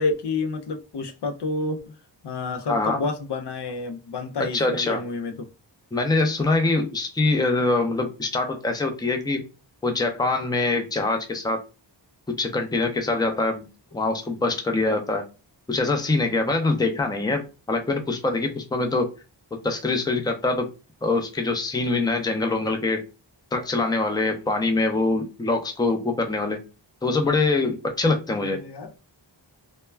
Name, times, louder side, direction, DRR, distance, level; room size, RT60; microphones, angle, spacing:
voice 1, 0.0-2.0 2.2-5.5 28.4-28.9, left 3 dB, 60° left, 0.5 m, -29 dB
voice 2, 2.7-3.0 4.5-5.0 5.9-9.4 9.8-11.6 12.4-13.7 13.9-15.2 15.7-19.1 19.6-20.7 21.0-23.0 23.5-26.6 27.0-28.6, left 3 dB, 10° left, 0.5 m, -24 dB
2.2 x 2.1 x 3.2 m
wide cardioid pair, 85°, 45 cm